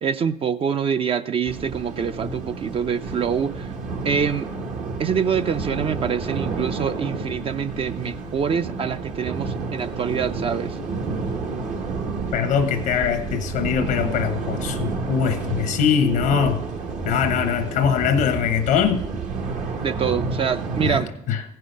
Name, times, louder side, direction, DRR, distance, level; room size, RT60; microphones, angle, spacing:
voice 1, 0.0-3.7 4.0-4.5 5.0-10.8 19.8-21.1, right 7 dB, 40° right, 0.4 m, -25 dB
sound 1, 1.4-21.0, right 4 dB, 65° right, 1.4 m, -30 dB
voice 2, 12.3-16.6 17.0-19.0 20.8-21.0 21.3-21.4, left 7 dB, 85° left, 0.7 m, -22 dB
15.0 x 5.5 x 5.2 m
supercardioid pair, 80°, 14 cm